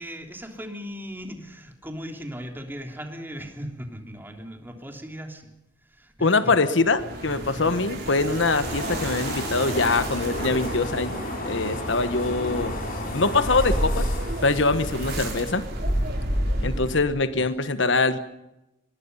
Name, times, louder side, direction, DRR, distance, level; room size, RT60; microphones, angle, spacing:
voice 1, 0.0-5.5 5.9-6.5, equal, 10° right, 3 dB, 3.3 m, -38 dB
voice 2, 6.2-11.2 11.4-12.8 13.1-14.1 14.4-15.6 16.6-18.2, left 3 dB, 65° left, 12 dB, 1.3 m, -23 dB
sound 1, 6.8-17.2, right 1 dB, 55° right, 6.5 m, -31 dB
sound 2, 8.6-15.2, left 1 dB, 50° left, 5.3 m, -33 dB
24.0 x 21.0 x 5.5 m, 0.91 s
head